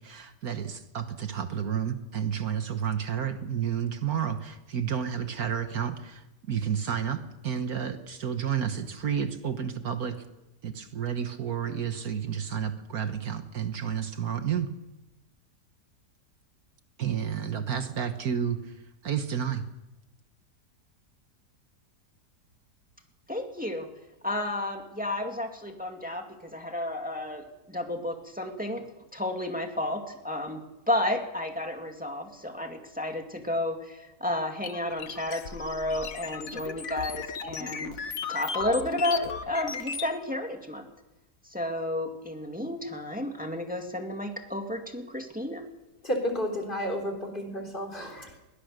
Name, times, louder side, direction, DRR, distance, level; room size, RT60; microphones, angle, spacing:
voice 1, 0.0-10.2 10.6-14.7 17.0-18.8 19.0-19.6, right 8 dB, 65° right, 8 dB, 1.6 m, -31 dB
voice 2, 23.3-23.9 24.2-28.8 29.1-37.9 38.3-40.9 41.5-45.6, left 1 dB, 5° right, 3 dB, 2.2 m, -32 dB
sound 1, 34.6-40.1, left 6 dB, 60° left, 1.5 m, -36 dB
voice 3, 46.0-48.4, equal, 30° left, 3 dB, 3.6 m, -31 dB
22.0 x 18.5 x 6.6 m, 1.0 s
omnidirectional pair, 1.7 m